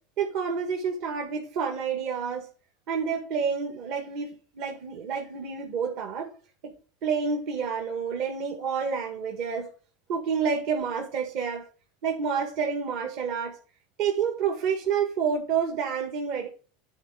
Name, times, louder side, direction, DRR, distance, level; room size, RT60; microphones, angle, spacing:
voice 1, 0.2-2.5 2.9-6.3 6.6-6.7 7.0-9.7 10.1-11.7 12.0-13.6 14.0-16.5, right 6 dB, 60° right, 1.7 m, -29 dB
10.0 x 4.3 x 4.8 m
supercardioid pair, 125°, 0 cm